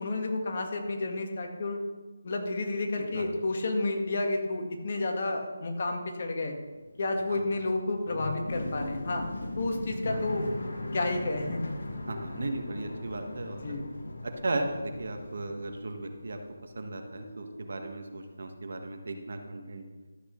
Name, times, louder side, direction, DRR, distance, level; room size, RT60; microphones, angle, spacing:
voice 1, 0.0-1.8 2.2-6.5 7.0-9.2 9.6-10.5 10.9-11.6 13.6-13.8, left 2 dB, 45° left, 3 dB, 1.6 m, -31 dB
sound 1, 6.7-16.8 17.0-17.9, left 1 dB, 75° left, 2.1 m, -39 dB
voice 2, 12.1-13.8 14.2-19.8, right 2 dB, 65° right, 5 dB, 1.4 m, -36 dB
13.0 x 8.1 x 3.2 m, 1.3 s
figure-of-eight pair, 165°, 0 cm